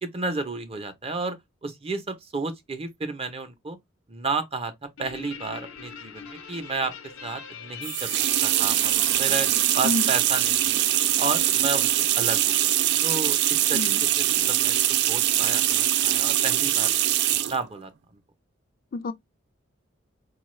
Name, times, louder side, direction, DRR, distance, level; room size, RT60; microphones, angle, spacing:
voice 1, 0.0-3.8 4.1-4.7 5.0-6.9 7.2-8.1 8.4-10.8 11.2-12.7 13.0-13.9 14.2-14.8 15.1-17.1 17.5-17.9, right 3 dB, 30° right, 0.7 m, -32 dB
Guitar, 5.0-11.7, left 6 dB, 80° left, 1.0 m, -43 dB
sound 1, 7.8-17.6, right 13 dB, 60° right, 0.3 m, -23 dB
voice 2, 9.8-10.1 13.7-14.0 18.9-19.1, left 3 dB, 45° left, 0.4 m, -28 dB
4.4 x 2.3 x 3.1 m
head